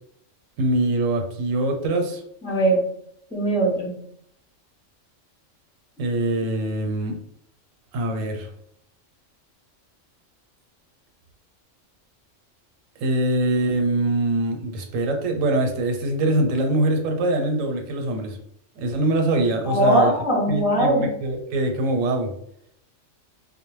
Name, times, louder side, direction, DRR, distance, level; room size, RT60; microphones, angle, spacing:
voice 1, 0.6-2.2 6.0-7.2 7.9-8.5 13.0-18.4 18.8-20.1 20.5-22.3, right 2 dB, 90° right, 4 dB, 1.0 m, -23 dB
voice 2, 2.4-2.9 3.3-4.0 19.7-21.1, right 1 dB, 5° right, -4 dB, 0.4 m, -21 dB
2.2 x 2.0 x 3.0 m, 0.69 s
omnidirectional pair, 1.3 m